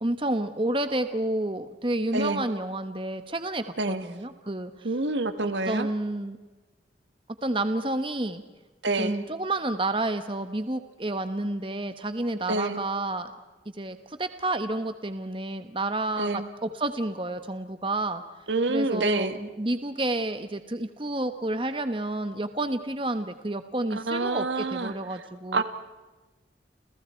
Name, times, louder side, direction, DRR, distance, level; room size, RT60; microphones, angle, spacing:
voice 1, 0.0-4.7 5.4-6.4 7.4-8.4 9.0-13.3 13.8-16.3 16.6-18.2 18.7-25.6, right 2 dB, 30° right, 9 dB, 1.2 m, -30 dB
voice 2, 2.1-2.4 3.8-4.0 4.8-5.9 8.8-9.2 12.5-12.8 16.2-16.5 18.5-19.4 23.9-24.9 25.5-25.6, right 2 dB, 80° right, 9 dB, 1.8 m, -27 dB
29.5 x 29.5 x 4.5 m, 1.2 s
head